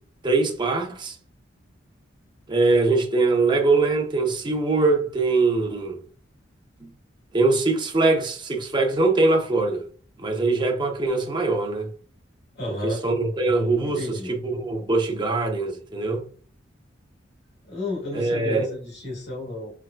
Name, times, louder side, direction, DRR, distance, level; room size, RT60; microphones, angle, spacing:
voice 1, 0.2-1.1 2.5-6.0 6.8-6.9 7.3-9.8 10.2-11.9 12.8-16.3 18.1-18.7, right 3 dB, 25° right, 0.7 m, -22 dB
voice 2, 12.5-13.0 13.8-14.3 17.6-19.7, left 2 dB, 60° left, 1.8 m, -32 dB
4.6 x 3.6 x 2.2 m
head